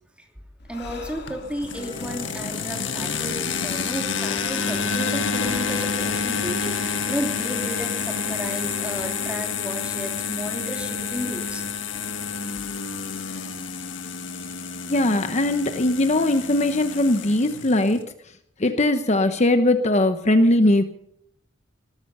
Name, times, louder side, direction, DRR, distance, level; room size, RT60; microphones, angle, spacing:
Breathing, 0.6-4.1, left 2 dB, 60° left, 2.5 m, -44 dB
voice 1, 0.7-11.6, equal, 5° right, 3 dB, 2.9 m, -33 dB
sound 1, 1.3-18.0, left 6 dB, 90° left, 1.6 m, -29 dB
sound 2, 1.7-9.4, right 1 dB, 30° right, 5.3 m, -41 dB
voice 2, 14.9-18.0 18.6-20.8, left 1 dB, 40° left, 9 dB, 0.9 m, -20 dB
19.5 x 13.5 x 5.5 m, 0.72 s
head